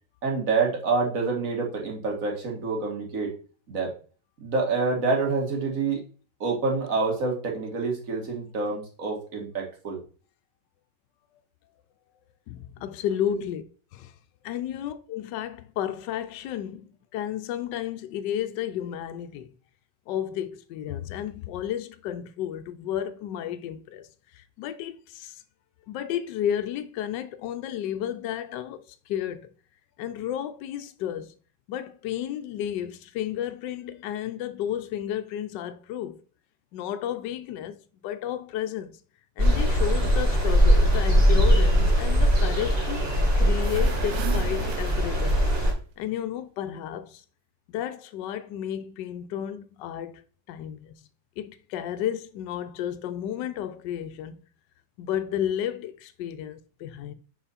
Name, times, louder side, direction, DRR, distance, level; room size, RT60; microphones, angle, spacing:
voice 1, 0.2-3.3 3.7-3.9 4.4-6.0 6.4-10.0 13.3-13.4, right 4 dB, 50° right, 2.0 m, -27 dB
voice 2, 12.5-13.6 13.9-14.1 14.4-19.5 20.1-25.4 25.9-29.5 30.0-31.3 31.7-36.2 36.7-37.8 38.0-39.0 39.4-43.1 43.3-45.4 46.0-47.2 47.7-50.2 50.5-51.1 51.4-54.4 55.0-57.1, left 10 dB, 85° left, 1.3 m, -32 dB
sound 1, 39.4-45.7, equal, 35° right, 2.0 m, -21 dB
sound 2, 43.6-45.6, right 9 dB, 85° right, 1.4 m, -39 dB
5.6 x 5.5 x 4.1 m
omnidirectional pair, 1.9 m